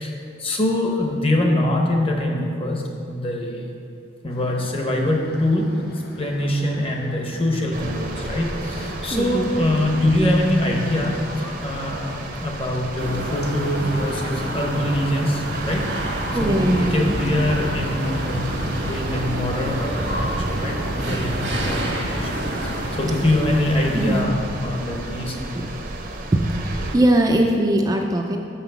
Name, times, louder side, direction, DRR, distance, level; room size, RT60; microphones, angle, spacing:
voice 1, 0.0-3.7 4.2-5.9 6.2-15.9 16.4-25.4, left 1 dB, 30° left, 1 dB, 0.9 m, -24 dB
sound 1, 4.3-19.6, left 1 dB, 55° left, 0.8 m, -42 dB
sound 2, 7.7-27.0, right 2 dB, 50° right, 0.7 m, -32 dB
voice 2, 9.1-9.5 16.3-17.2 23.9-24.2 25.6-25.7 26.3-28.4, right 1 dB, 20° right, 2 dB, 0.4 m, -20 dB
sound 3, 13.0-24.2, right 1 dB, 85° right, 1.3 m, -29 dB
6.0 x 5.7 x 7.0 m, 2.6 s
head